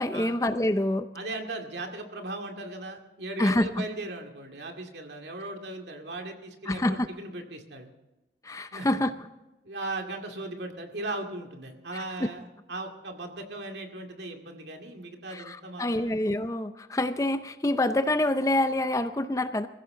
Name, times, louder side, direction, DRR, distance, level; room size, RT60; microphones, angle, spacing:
voice 1, 0.0-1.1 3.4-3.8 6.7-7.1 8.4-9.1 11.9-12.3 15.3-19.7, left 1 dB, 15° left, 10 dB, 0.5 m, -26 dB
voice 2, 1.1-7.9 8.7-8.9 9.6-16.1, right 2 dB, 70° right, 3 dB, 2.2 m, -38 dB
23.0 x 15.0 x 3.8 m, 1.0 s
head